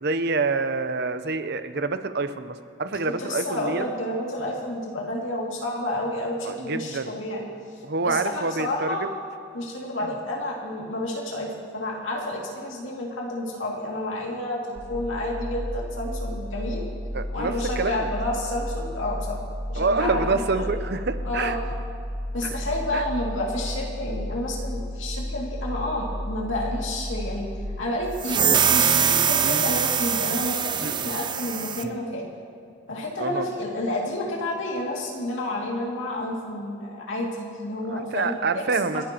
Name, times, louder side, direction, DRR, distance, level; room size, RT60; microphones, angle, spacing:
voice 1, 0.0-3.9 6.4-7.2 7.8-9.1 17.1-18.1 19.8-21.6 22.4-22.6 22.9-23.1 29.4-29.6 30.8-31.1 33.2-33.5 37.9-39.0, right 3 dB, 55° right, 10 dB, 0.7 m, -27 dB
voice 2, 3.2-7.4 8.0-9.1 9.5-16.9 17.3-19.4 19.7-20.8 21.2-21.6 22.3-27.5 27.8-32.3 32.9-38.6 38.9-39.0, left 1 dB, 80° left, -3 dB, 2.4 m, -30 dB
sound 1, 14.8-27.6, equal, 35° left, 2.9 m, -33 dB
sound 2, 28.2-31.9, right 8 dB, 25° right, 0.4 m, -23 dB
29.5 x 11.0 x 3.0 m, 2.4 s
head